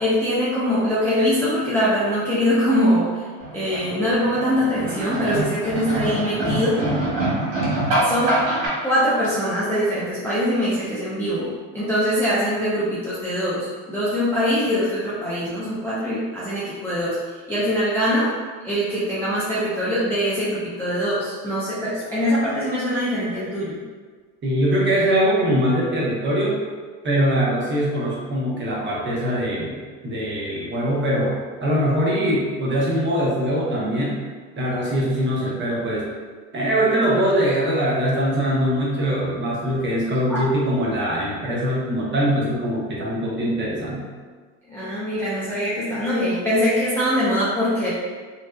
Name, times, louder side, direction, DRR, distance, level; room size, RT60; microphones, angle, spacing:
voice 1, 0.0-3.3 3.5-6.8 8.0-8.4 8.8-18.3 18.6-23.8 40.3-40.4 44.7-47.9, equal, 5° left, -10 dB, 0.4 m, -23 dB
sound 1, 3.4-8.7, right 1 dB, 90° right, 1.1 m, -25 dB
voice 2, 24.4-26.6 27.0-29.8 30.0-31.3 31.6-34.2 34.6-36.0 36.5-44.0, equal, 30° right, -5 dB, 0.8 m, -22 dB
2.6 x 2.1 x 2.2 m, 1.5 s
supercardioid pair, 95°, 40 cm